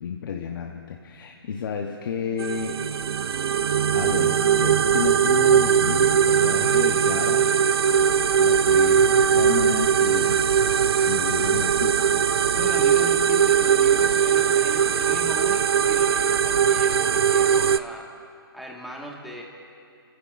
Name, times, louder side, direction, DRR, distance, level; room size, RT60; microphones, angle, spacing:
voice 1, 0.0-2.8 3.9-7.5 8.4-10.4 11.1-12.3, left 6 dB, 55° left, 2 dB, 1.0 m, -31 dB
sound 1, 2.4-17.8, right 8 dB, 75° right, 0.4 m, -20 dB
voice 2, 12.5-18.1 18.5-19.4, equal, ahead, -2 dB, 1.6 m, -38 dB
24.5 x 14.5 x 2.5 m, 2.4 s
hypercardioid pair, 140°, 13 cm